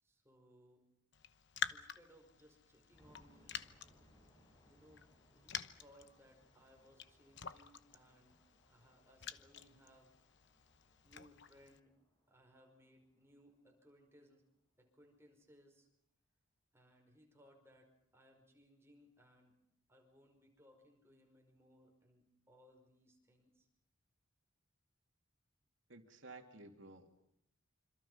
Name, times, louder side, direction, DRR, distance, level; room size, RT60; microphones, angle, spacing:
voice 1, 0.0-0.9 1.7-3.6 4.6-5.1 5.3-10.1 11.0-11.9 12.3-14.4 14.8-15.9 16.7-19.6 19.9-23.7, equal, 10° right, 2 dB, 5.3 m, -66 dB
Raindrop, 1.1-11.8, left 8 dB, 60° left, 1.0 m, -49 dB
sound 1, 2.9-13.8, equal, 20° left, 6.1 m, -70 dB
voice 2, 25.9-27.2, right 3 dB, 65° right, 4 dB, 2.6 m, -54 dB
26.5 x 26.5 x 5.6 m, 0.74 s
head